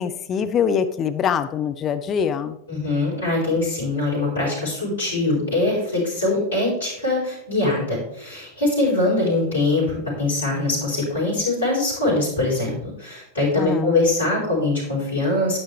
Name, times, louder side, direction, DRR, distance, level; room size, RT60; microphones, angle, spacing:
voice 1, 0.0-2.6 13.6-14.0, left 7 dB, 30° left, 9 dB, 0.6 m, -23 dB
voice 2, 2.7-15.6, left 2 dB, 65° left, -7 dB, 4.8 m, -22 dB
11.5 x 9.1 x 3.3 m, 0.77 s
figure-of-eight pair, 90°, 0 cm